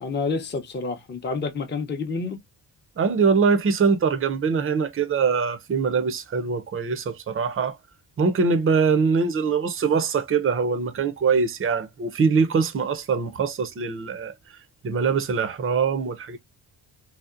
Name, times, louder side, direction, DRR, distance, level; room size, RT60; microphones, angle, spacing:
voice 1, 0.0-2.4, left 4 dB, 25° left, 0.7 m, -28 dB
voice 2, 3.0-7.8 8.2-14.3 14.8-16.4, right 5 dB, 30° right, 0.5 m, -23 dB
2.8 x 2.0 x 2.4 m
supercardioid pair, 55°, 47 cm